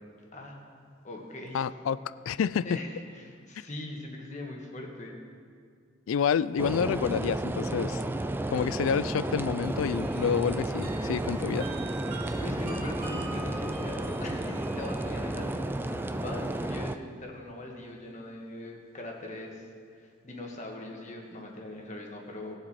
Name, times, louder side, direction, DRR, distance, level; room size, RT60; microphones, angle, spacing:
voice 1, 1.0-1.6 2.6-5.1 12.4-19.6 19.9-22.6, left 1 dB, 35° left, 0 dB, 1.7 m, -41 dB
voice 2, 1.5-2.0 2.3-2.8 6.1-8.0 8.5-11.7, left 7 dB, 85° left, 18 dB, 0.3 m, -28 dB
sound 1, 6.6-17.0, right 1 dB, 10° right, 0.3 m, -32 dB
sound 2, 9.6-16.7, right 2 dB, 45° right, 2.5 m, -45 dB
19.5 x 7.5 x 4.3 m, 2.1 s
head